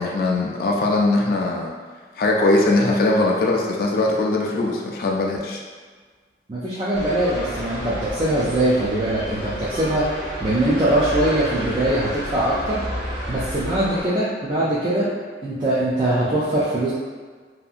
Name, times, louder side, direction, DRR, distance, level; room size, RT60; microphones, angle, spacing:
voice 1, 0.0-1.7 2.2-5.6, left 2 dB, 55° left, -1 dB, 0.3 m, -20 dB
voice 2, 6.5-10.1 10.4-12.8 13.3-15.1 15.4-16.9, right 1 dB, 25° right, -9 dB, 0.3 m, -22 dB
sound 1, 6.9-14.0, equal, 45° right, 1.2 m, -31 dB
2.7 x 2.5 x 2.3 m, 1.5 s
head